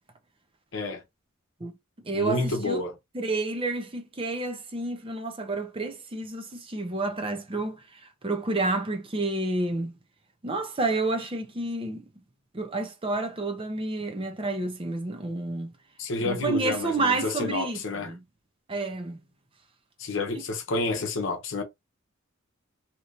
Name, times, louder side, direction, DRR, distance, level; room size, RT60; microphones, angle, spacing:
voice 1, 0.7-1.0 2.1-3.0 16.0-18.1 20.0-21.6, left 2 dB, 65° left, 0.8 m, -29 dB
voice 2, 2.0-2.8 3.1-9.9 10.4-12.0 12.5-15.7 16.2-17.8 18.1-18.2 18.7-19.2 20.3-20.5, right 2 dB, 25° right, 0.6 m, -30 dB
2.9 x 2.6 x 3.2 m
head